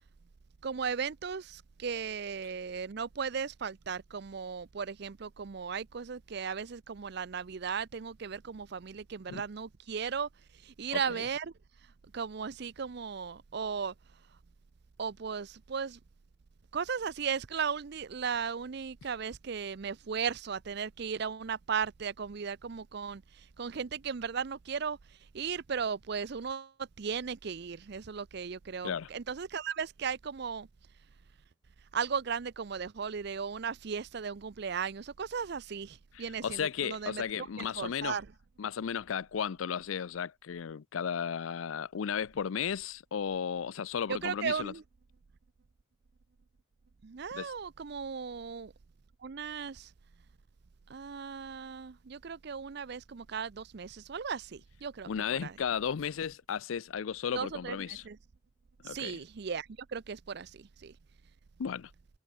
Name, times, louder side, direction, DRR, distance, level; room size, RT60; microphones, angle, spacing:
voice 1, 0.6-10.3 10.6-11.5 12.1-13.9 15.0-16.0 16.7-23.2 23.6-25.0 25.3-30.7 31.9-37.2 37.6-38.3 44.1-44.8 47.0-48.7 49.2-49.9 50.9-55.5 57.3-58.2 58.8-60.9, right 6 dB, 55° right, 0.5 m, -36 dB
voice 2, 10.9-11.3 28.8-29.1 36.1-38.2 38.6-44.7 47.3-47.5 55.1-58.0 58.8-59.2 61.6-61.9, left 7 dB, 90° left, 0.5 m, -34 dB
head